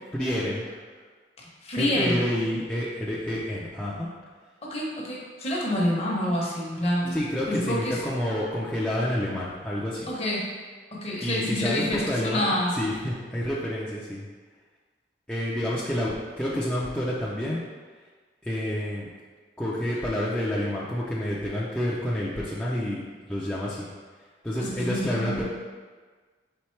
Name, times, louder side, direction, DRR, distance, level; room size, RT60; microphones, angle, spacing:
voice 1, 0.1-0.8 1.7-4.1 7.1-10.1 11.2-14.3 15.3-17.6 18.4-19.1 19.6-23.0 23.3-23.9 24.4-25.4, left 1 dB, 5° left, -8 dB, 0.4 m, -29 dB
voice 2, 1.4-2.2 4.6-7.2 7.5-8.0 10.1-10.5 10.9-12.7 24.6-25.4, left 1 dB, 35° left, -3 dB, 0.9 m, -27 dB
4.3 x 3.8 x 3.2 m, 1.4 s
head